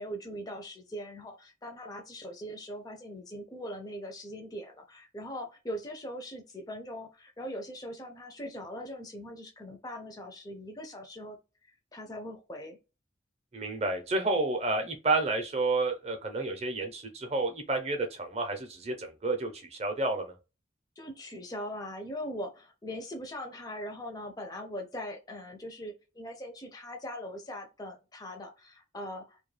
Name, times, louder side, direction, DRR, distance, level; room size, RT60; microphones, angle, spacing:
voice 1, 0.0-11.4 11.9-12.8 21.0-29.4, equal, 20° left, 0.4 m, -41 dB
voice 2, 13.5-20.3, right 2 dB, 35° right, 0.5 m, -30 dB
2.2 x 2.1 x 3.1 m
head